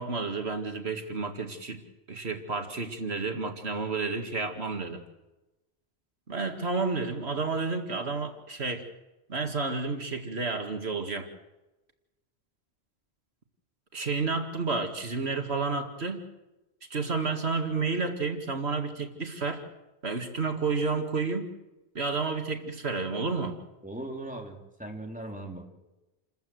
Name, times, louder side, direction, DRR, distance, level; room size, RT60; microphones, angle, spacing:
voice 1, 0.0-1.8 2.1-5.0 6.3-8.9 9.3-11.3 13.9-16.2 16.9-19.6 20.0-21.5 21.9-23.6, right 4 dB, 85° right, 5 dB, 2.4 m, -31 dB
voice 2, 23.8-25.7, right 1 dB, 5° right, 1 dB, 3.6 m, -39 dB
28.5 x 14.0 x 8.0 m, 1.0 s
omnidirectional pair, 1.1 m